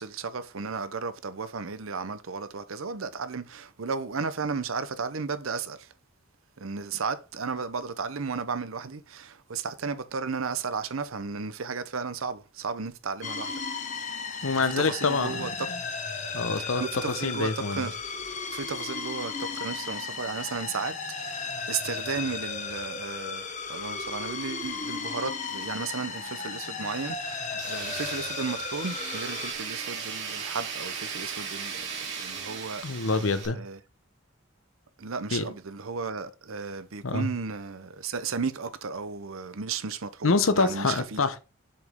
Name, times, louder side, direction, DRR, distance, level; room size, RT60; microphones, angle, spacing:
voice 1, 0.0-5.9 6.6-13.5 14.6-15.5 16.6-18.0 18.5-32.8 33.5-33.8 35.0-41.2, right 5 dB, 80° right, 0.7 m, -34 dB
sound 1, 13.2-29.5, left 5 dB, 35° left, 0.9 m, -35 dB
voice 2, 14.4-15.8 16.3-16.8 17.2-17.9 32.8-33.6 35.3-35.5 37.0-37.3 40.2-41.4, left 4 dB, 75° left, 0.8 m, -26 dB
Tools, 27.6-33.5, right 6 dB, 55° right, 2.6 m, -36 dB
7.1 x 5.1 x 3.6 m
head